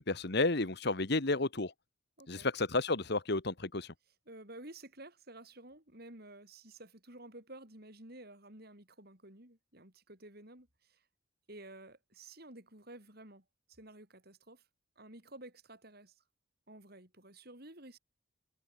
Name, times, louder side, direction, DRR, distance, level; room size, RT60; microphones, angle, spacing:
voice 1, 0.0-1.7 2.3-3.9, left 2 dB, 55° left, 1.5 m, -32 dB
voice 2, 2.2-2.5 4.3-11.0 11.5-14.6 15.0-16.2 16.7-18.0, right 1 dB, 50° right, 6.3 m, -52 dB
head